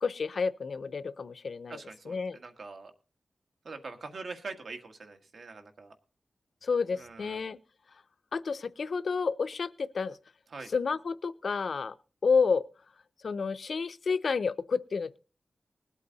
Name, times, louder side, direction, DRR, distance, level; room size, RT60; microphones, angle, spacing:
voice 1, 0.0-1.8 2.1-2.4 6.6-7.6 8.3-10.2 10.7-11.9 12.2-12.7 13.2-15.2, left 5 dB, 70° left, 12 dB, 0.6 m, -30 dB
voice 2, 1.7-2.9 3.6-5.9 7.0-7.4 10.5-10.7, right 4 dB, 75° right, 6 dB, 1.7 m, -43 dB
20.0 x 8.3 x 4.0 m, 0.35 s
wide cardioid pair, 130°, 0 cm